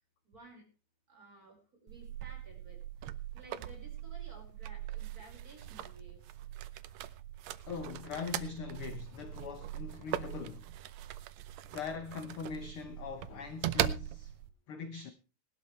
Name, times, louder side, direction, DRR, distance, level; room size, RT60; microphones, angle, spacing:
voice 1, 0.3-0.6 1.1-2.8 3.3-6.2, right 2 dB, 25° right, 5.7 m, -55 dB
sound 1, 1.9-14.5, right 12 dB, 70° right, 1.8 m, -40 dB
voice 2, 7.7-10.7 11.7-14.3 14.7-15.1, left 5 dB, 65° left, 1.3 m, -41 dB
20.0 x 12.0 x 3.3 m
omnidirectional pair, 3.8 m